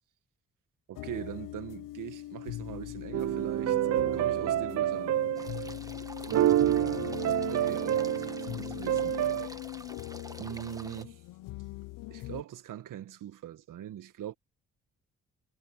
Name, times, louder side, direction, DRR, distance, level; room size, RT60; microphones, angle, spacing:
voice 1, 0.9-3.8 4.1-5.2 7.4-9.1 10.4-11.2 12.1-14.3, right 11 dB, 80° right, 1.9 m, -41 dB
sound 1, 1.0-12.4, left 16 dB, 85° left, 0.7 m, -41 dB
sound 2, 3.1-5.8 6.2-9.5, right 12 dB, 55° right, 0.5 m, -28 dB
sound 3, 5.4-11.1, right 1 dB, 10° right, 1.6 m, -48 dB
supercardioid pair, 50°, 32 cm